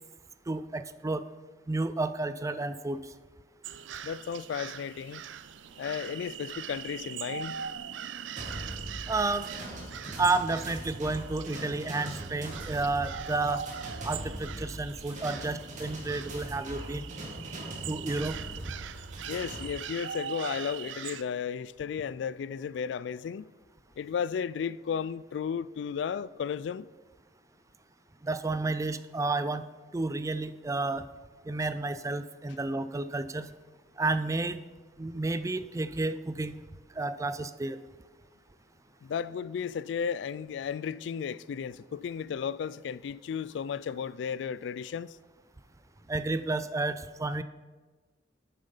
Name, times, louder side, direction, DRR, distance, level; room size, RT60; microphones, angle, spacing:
voice 1, 0.5-1.2 1.7-3.1 9.1-9.5 10.2-13.6 14.0-17.1 17.8-18.4 28.2-29.7 29.9-31.1 31.5-33.5 34.0-34.6 35.0-36.6 36.9-37.8 46.1-47.4, right 3 dB, 20° right, 0.4 m, -31 dB
sound 1, 3.6-21.2, right 8 dB, 85° right, 0.4 m, -41 dB
voice 2, 4.0-5.2 5.8-7.6 19.3-23.5 24.0-26.9 39.0-45.2, left 7 dB, 70° left, 0.3 m, -34 dB
sound 2, 8.4-19.7, right 1 dB, 45° right, 2.2 m, -41 dB
8.8 x 7.3 x 5.6 m
head